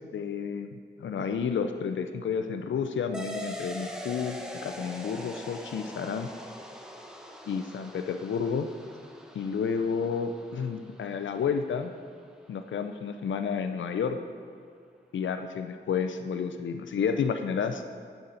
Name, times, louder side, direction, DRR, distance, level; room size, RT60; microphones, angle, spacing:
voice 1, 0.1-6.3 7.5-8.7 9.3-11.9 12.5-14.2 15.1-17.8, left 6 dB, 90° left, 8 dB, 0.5 m, -31 dB
sound 1, 3.1-12.2, equal, 5° right, 0.8 m, -43 dB
10.0 x 7.0 x 3.9 m, 2.1 s
wide cardioid pair, 95°, 19 cm